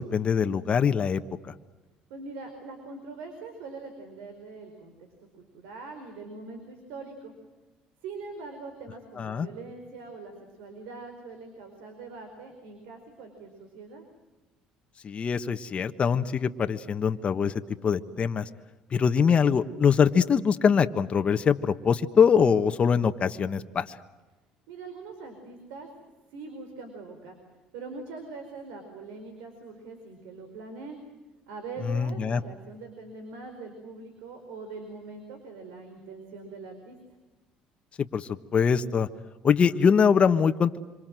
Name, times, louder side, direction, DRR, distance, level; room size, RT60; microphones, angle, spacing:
voice 1, 0.0-1.5 9.2-9.5 15.0-17.5 17.8-18.5 18.9-24.0 31.8-32.4 38.1-39.1 39.4-40.8, left 6 dB, 40° left, 8 dB, 1.4 m, -23 dB
voice 2, 2.1-5.1 5.4-7.3 8.0-14.0 24.7-25.9 26.3-27.3 27.7-31.0 31.5-37.0, right 3 dB, 80° right, 6 dB, 4.6 m, -42 dB
26.5 x 26.0 x 7.8 m, 1.2 s
supercardioid pair, 85°, 3 cm